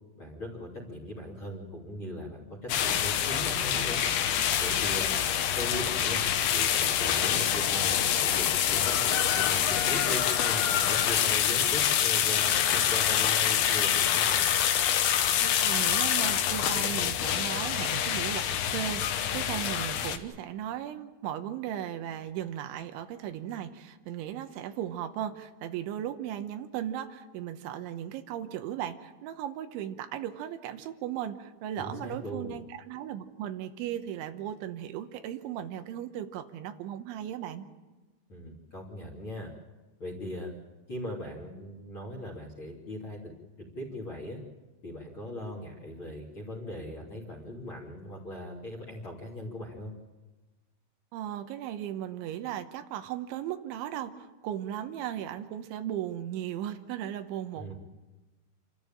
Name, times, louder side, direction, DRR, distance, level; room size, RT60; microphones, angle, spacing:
voice 1, 0.2-4.0 4.6-5.1 5.6-6.2 6.5-14.5 31.8-32.5 38.3-39.5 40.0-40.5 40.9-43.3 43.6-44.4 44.8-49.9 57.5-57.7, left 1 dB, 30° left, 2 dB, 3.0 m, -39 dB
sound 1, 2.7-20.2, left 10 dB, 70° left, 2.7 m, -26 dB
voice 2, 15.4-37.7 51.1-57.7, right 11 dB, 85° right, 8 dB, 3.4 m, -36 dB
28.0 x 13.5 x 9.0 m, 1.2 s
omnidirectional pair, 5.4 m